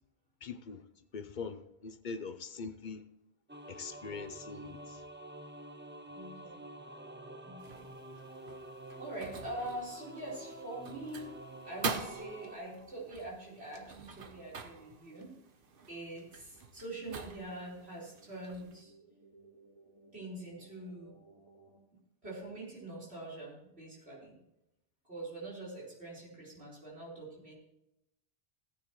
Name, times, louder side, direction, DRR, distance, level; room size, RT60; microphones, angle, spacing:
voice 1, 0.4-0.8 1.1-3.0 3.7-5.0, left 5 dB, 50° left, 11 dB, 0.8 m, -42 dB
sound 1, 3.5-12.6, right 1 dB, 10° right, 0.7 m, -48 dB
voice 2, 6.1-6.6 7.4-7.9 9.0-11.3 11.6-15.3 15.9-18.9 20.1-21.2 22.2-24.4 25.0-27.5, right 1 dB, 80° right, -4 dB, 4.7 m, -44 dB
sound 2, 7.6-18.8, right 4 dB, 60° right, 1.1 m, -45 dB
sound 3, 16.4-21.8, right 3 dB, 30° right, 4.0 m, -63 dB
18.0 x 9.0 x 3.1 m, 0.86 s
omnidirectional pair, 1.1 m